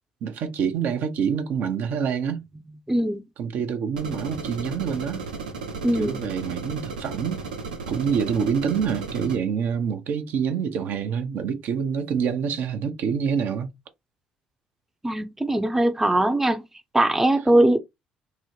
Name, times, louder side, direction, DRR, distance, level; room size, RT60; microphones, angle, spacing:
voice 1, 0.2-2.4 3.4-5.2 5.9-7.4 7.9-13.7, right 7 dB, 60° right, 0.6 m, -26 dB
voice 2, 2.9-3.2 5.8-6.2 15.0-16.6 16.9-17.8, right 1 dB, 10° right, 0.6 m, -21 dB
sound 1, 3.9-9.4, right 4 dB, 90° right, 0.9 m, -34 dB
3.7 x 2.0 x 3.1 m
hypercardioid pair, 55°, 4 cm